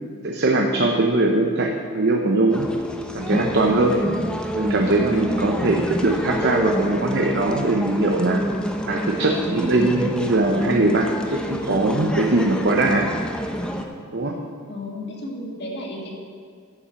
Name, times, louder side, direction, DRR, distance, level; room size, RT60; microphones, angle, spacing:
voice 1, 0.2-2.7 3.1-4.0 4.5-8.4 8.9-13.1 14.1-14.4, right 2 dB, 50° right, 2 dB, 0.8 m, -21 dB
Horses on pavement, 2.5-13.8, equal, 5° left, 0.7 m, -27 dB
voice 2, 3.9-4.4 14.7-16.1, left 1 dB, 50° left, -1 dB, 2.0 m, -33 dB
11.0 x 7.2 x 7.5 m, 2.2 s
head